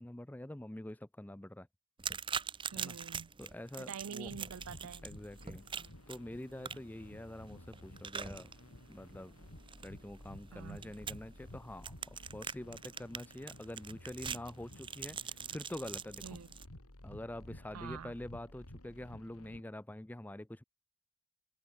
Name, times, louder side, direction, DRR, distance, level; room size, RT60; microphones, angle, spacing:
voice 1, 0.0-1.7 2.8-3.0 3.4-4.3 5.0-5.6 6.1-8.5 8.9-9.3 9.8-16.4 17.0-20.6, left 1 dB, 10° left, 0.4 m, -46 dB
sound 1, 2.0-16.6, right 7 dB, 20° right, 1.1 m, -44 dB
voice 2, 2.7-3.3 3.8-5.1 10.5-10.9 16.2-16.5 17.7-18.1, right 6 dB, 90° right, 0.5 m, -46 dB
sound 2, 4.2-19.6, left 1 dB, 90° left, 3.2 m, -54 dB
open air
head